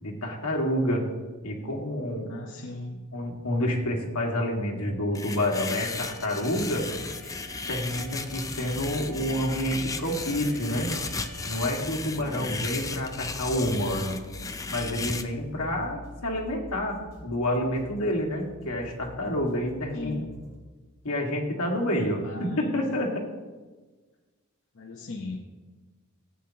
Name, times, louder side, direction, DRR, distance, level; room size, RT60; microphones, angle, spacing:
voice 1, 0.0-1.0 1.4-2.3 3.1-6.9 7.7-10.9 11.4-14.2 14.7-20.2 21.0-23.1, equal, 80° left, 0 dB, 1.9 m, -28 dB
voice 2, 2.3-3.0 12.2-12.6 19.9-20.3 22.2-22.8 24.7-25.4, left 3 dB, 60° left, -1 dB, 0.9 m, -38 dB
sound 1, 5.2-15.2, left 4 dB, 15° left, 0.5 m, -35 dB
Alarm, 5.5-11.8, equal, 50° right, 3.7 m, -48 dB
sound 2, 6.7-20.6, left 1 dB, 30° right, 3.5 m, -46 dB
15.0 x 8.6 x 2.9 m, 1.3 s
head